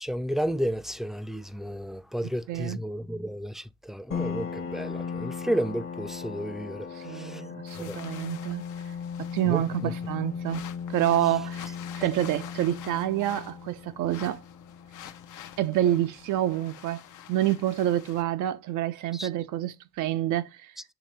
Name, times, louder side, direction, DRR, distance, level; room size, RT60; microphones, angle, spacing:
voice 1, 0.0-7.5 7.9-8.0 9.5-10.0 19.1-19.3, equal, ahead, 0.4 m, -32 dB
voice 2, 2.5-2.8 6.9-8.7 9.3-10.6 10.9-14.4 15.6-17.0 17.3-20.7, right 13 dB, 85° right, 0.6 m, -28 dB
sound 1, 4.1-17.4, left 6 dB, 45° left, 0.9 m, -38 dB
sound 2, 7.7-18.2, left 10 dB, 80° left, 0.6 m, -47 dB
9.0 x 3.3 x 3.2 m
cardioid pair, 90°, 30 cm